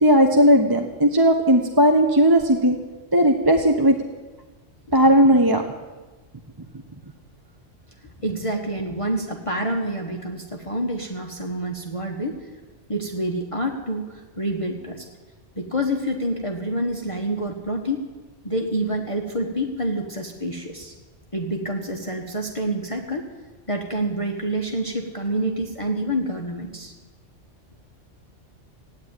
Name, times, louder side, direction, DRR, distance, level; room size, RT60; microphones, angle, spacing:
voice 1, 0.0-2.8 3.1-4.0 4.9-5.6, equal, 20° right, 3 dB, 0.8 m, -16 dB
voice 2, 8.2-12.5 12.9-15.1 15.6-18.1 18.4-20.9 21.3-23.3 23.7-26.9, right 1 dB, 30° left, 1 dB, 1.3 m, -27 dB
15.5 x 9.7 x 8.9 m, 1.3 s
omnidirectional pair, 1.2 m